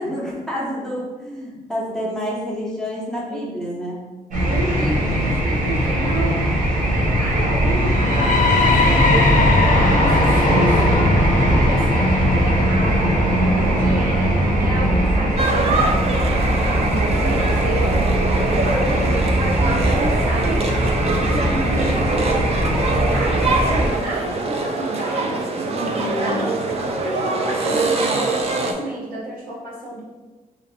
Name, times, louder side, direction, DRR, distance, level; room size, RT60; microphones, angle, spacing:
voice 1, 0.0-4.1 13.3-14.0 25.7-26.4, equal, 5° left, -5 dB, 0.8 m, -29 dB
sound 1, 4.3-23.9, right 1 dB, 65° right, 1.1 m, -19 dB
voice 2, 4.4-6.4 6.9-11.0 11.3-13.1 13.5-15.9 16.3-25.5 26.1-26.5 27.0-30.0, right 1 dB, 85° right, -6 dB, 1.2 m, -30 dB
sound 2, 7.8-15.7, left 5 dB, 65° left, 0.5 m, -25 dB
sound 3, 15.4-28.7, right 3 dB, 45° right, 0.5 m, -24 dB
3.0 x 2.8 x 4.2 m, 1.3 s
cardioid pair, 130°, 14 cm